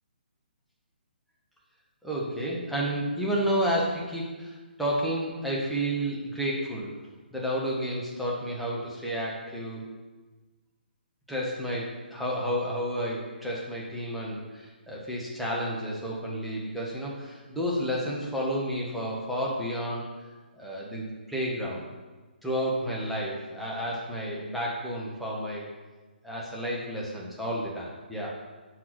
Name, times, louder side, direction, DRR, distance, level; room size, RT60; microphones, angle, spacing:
voice 1, 2.0-6.9 7.3-9.8 11.3-20.0 20.6-21.9 22.4-25.7 26.2-28.3, equal, ahead, -6 dB, 1.2 m, -31 dB
5.9 x 4.7 x 6.2 m, 1.3 s
figure-of-eight pair, 135°, 6 cm